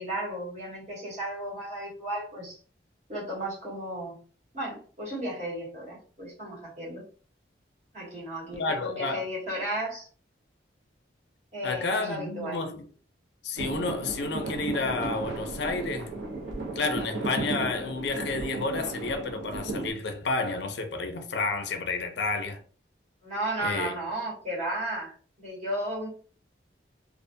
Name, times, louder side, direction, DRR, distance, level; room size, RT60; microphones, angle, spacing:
voice 1, 0.0-2.6 3.1-4.2 4.5-7.0 7.9-10.1 11.5-12.6 23.2-26.1, right 1 dB, 40° right, 1.1 m, -34 dB
voice 2, 8.6-9.2 11.6-12.9 13.4-16.1 16.8-22.6 23.6-23.9, left 3 dB, 65° left, 0.4 m, -30 dB
sound 1, 13.6-19.9, right 2 dB, 80° right, 0.8 m, -34 dB
2.4 x 2.2 x 2.5 m
head